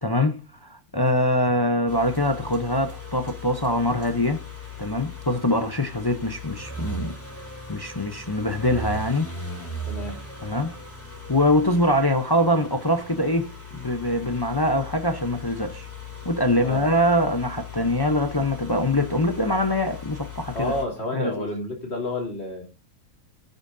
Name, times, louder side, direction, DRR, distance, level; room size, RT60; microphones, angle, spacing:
voice 1, 0.0-4.4 4.8-7.2 7.7-9.3 10.4-10.8 11.3-15.9 16.2-20.7 21.1-21.5, left 1 dB, 25° left, 0.5 m, -23 dB
sound 1, 1.9-20.9, left 1 dB, 10° left, 2.8 m, -38 dB
voice 2, 9.9-10.2 16.6-16.8 20.5-22.6, left 2 dB, 45° left, 3.4 m, -30 dB
19.5 x 9.3 x 2.6 m
omnidirectional pair, 1.5 m